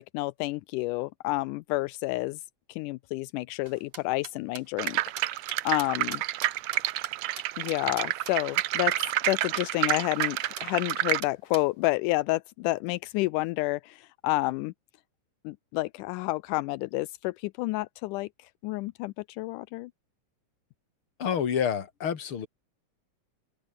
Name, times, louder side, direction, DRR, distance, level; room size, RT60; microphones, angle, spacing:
voice 1, 0.0-2.4 2.7-5.0 5.2-6.2 7.6-8.9 9.3-14.7 15.4-18.3 18.6-19.9, left 20 dB, 85° left, 2.1 m, -30 dB
sound 1, 3.7-8.3 8.6-8.7 8.9-9.0 9.2-9.3 9.6-10.0 10.2-10.3 10.6-11.6, right 6 dB, 55° right, 3.9 m, -41 dB
sound 2, 4.8-11.2, right 15 dB, 70° right, 1.8 m, -29 dB
voice 2, 21.2-22.5, left 8 dB, 45° left, 2.9 m, -28 dB
open air
omnidirectional pair, 3.6 m